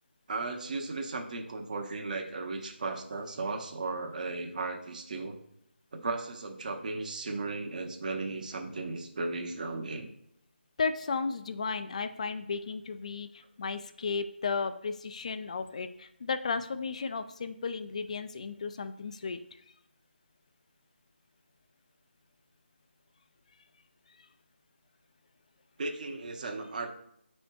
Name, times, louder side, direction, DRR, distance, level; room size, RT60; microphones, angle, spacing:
voice 1, 0.3-5.4 5.9-10.1 25.8-26.9, right 3 dB, 45° right, 3 dB, 0.8 m, -36 dB
voice 2, 10.8-19.4, left 4 dB, 35° left, 10 dB, 0.3 m, -34 dB
9.7 x 4.3 x 2.2 m, 0.78 s
figure-of-eight pair, 165°, 6 cm